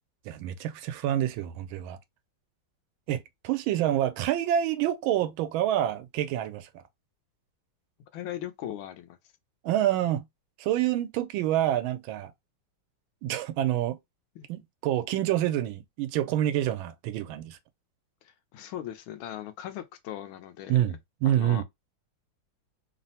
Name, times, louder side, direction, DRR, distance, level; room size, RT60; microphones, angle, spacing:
voice 1, 0.2-2.0 3.1-6.8 9.6-10.3 10.6-12.3 13.2-14.0 14.5-17.6 20.7-21.6, right 12 dB, 90° right, 1.4 m, -27 dB
voice 2, 8.1-9.2 14.3-14.4 18.2-21.0 21.2-21.6, left 11 dB, 85° left, 1.4 m, -39 dB
3.5 x 2.0 x 2.7 m
omnidirectional pair, 2.2 m